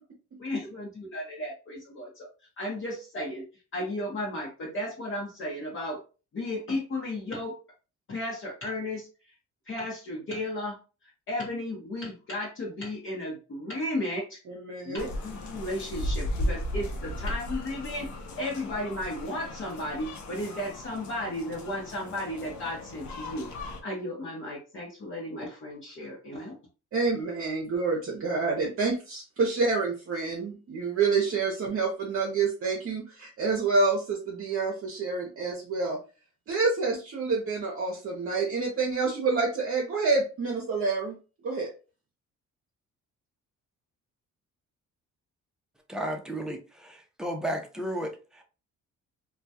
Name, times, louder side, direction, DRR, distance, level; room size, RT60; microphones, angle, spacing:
voice 1, 0.4-2.3 2.6-3.5 3.7-6.0 6.3-7.6 8.1-9.1 9.7-10.8 11.0-14.4 14.8-18.1 18.4-23.5 23.8-26.6, left 1 dB, 45° left, 0.8 m, -34 dB
voice 2, 14.5-15.0 26.9-36.0 36.5-41.2 41.4-41.7, right 4 dB, 50° right, 0.7 m, -28 dB
sound 1, 15.0-23.8, left 1 dB, 70° left, 0.7 m, -36 dB
voice 3, 45.9-48.4, equal, ahead, 0.5 m, -33 dB
2.2 x 2.2 x 2.7 m
cardioid pair, 90°, 30 cm